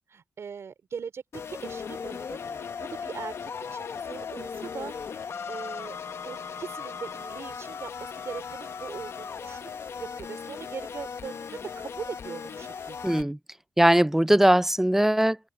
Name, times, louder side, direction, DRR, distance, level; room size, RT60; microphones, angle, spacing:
voice 1, 0.1-6.0 6.3-9.7 10.0-13.0, right 6 dB, 65° right, 3.6 m, -40 dB
sound 1, 1.3-13.2, left 6 dB, 65° left, 1.0 m, -37 dB
voice 2, 13.0-13.4 13.8-15.5, right 1 dB, 5° right, 0.5 m, -20 dB
open air
cardioid pair, 85°, 5 cm